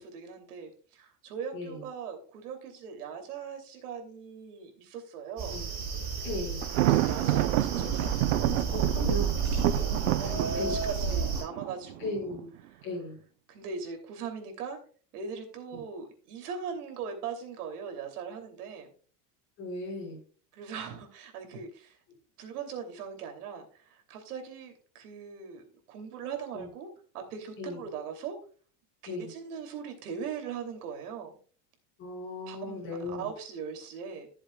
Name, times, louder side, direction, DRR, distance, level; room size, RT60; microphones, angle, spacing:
voice 1, 0.0-5.6 6.8-8.3 9.6-9.9 10.2-12.4 12.6-12.9 13.5-14.8 15.1-18.9 20.5-22.0 22.4-26.9 27.1-28.4 29.0-31.4 32.5-34.3, right 6 dB, 90° right, 4 dB, 2.9 m, -40 dB
sound 1, 5.4-11.4, right 5 dB, 30° right, 4.1 m, -31 dB
voice 2, 6.2-6.6 8.7-9.3 10.5-10.8 12.0-12.5 12.8-13.2 19.6-20.2 26.5-26.7 27.6-27.8 29.0-29.3 32.0-33.3, left 2 dB, 25° left, -3 dB, 5.1 m, -36 dB
Thunder, 6.6-12.4, right 15 dB, 60° right, 0.6 m, -29 dB
15.0 x 7.2 x 2.3 m, 0.41 s
supercardioid pair, 180°, 44 cm